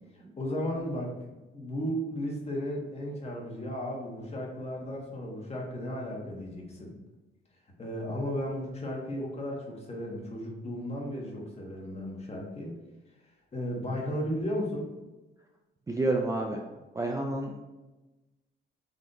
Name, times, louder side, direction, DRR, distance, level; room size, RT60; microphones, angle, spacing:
voice 1, 0.1-6.9 7.8-12.7 13.5-14.9, equal, 30° left, -1 dB, 1.2 m, -35 dB
voice 2, 15.9-16.6 16.9-17.6, right 2 dB, 15° right, 0 dB, 0.4 m, -29 dB
3.9 x 3.1 x 4.0 m, 1.1 s
cardioid pair, 110°, 20 cm